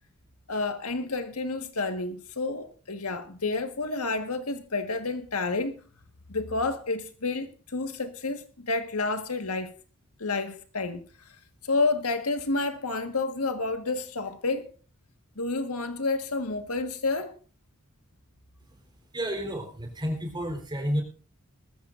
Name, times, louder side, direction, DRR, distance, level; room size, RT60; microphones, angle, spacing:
voice 1, 0.5-5.8 6.3-9.7 10.2-11.0 11.6-14.7 15.3-17.3, left 3 dB, 85° left, 1.6 m, -30 dB
voice 2, 19.1-21.0, equal, 20° right, 4.0 m, -31 dB
20.0 x 14.5 x 2.6 m
head